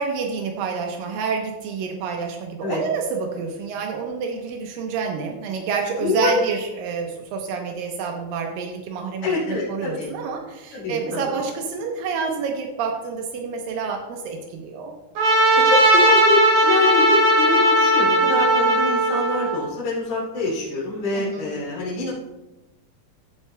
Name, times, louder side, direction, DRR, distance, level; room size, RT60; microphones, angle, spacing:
voice 1, 0.0-14.9 21.1-21.5, right 5 dB, 85° right, 2 dB, 2.6 m, -28 dB
voice 2, 6.0-6.4 9.2-10.1 10.7-11.4 15.7-22.1, left 2 dB, 50° left, -7 dB, 3.6 m, -25 dB
Trumpet, 15.2-19.6, right 1 dB, 65° right, 3.5 m, -17 dB
14.0 x 8.2 x 2.2 m, 1.0 s
omnidirectional pair, 3.9 m